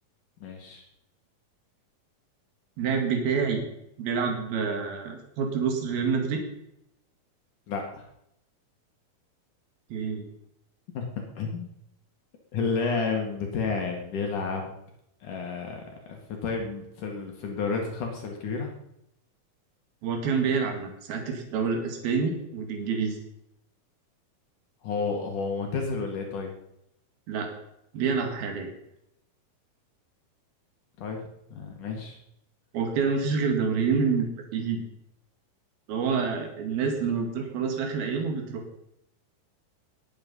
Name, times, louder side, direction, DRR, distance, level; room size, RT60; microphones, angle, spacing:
voice 1, 0.4-0.8 7.7-8.0 10.9-11.1 11.4-11.7 12.5-14.7 15.2-18.7 24.8-26.5 31.0-32.2, left 4 dB, 60° left, 2 dB, 3.3 m, -31 dB
voice 2, 2.8-3.6 4.0-6.4 9.9-10.2 20.0-23.2 27.3-27.5 27.9-28.7 32.7-34.3 34.5-34.8 35.9-38.6, right 5 dB, 85° right, 3 dB, 4.0 m, -27 dB
20.5 x 9.1 x 5.5 m, 0.79 s
omnidirectional pair, 4.2 m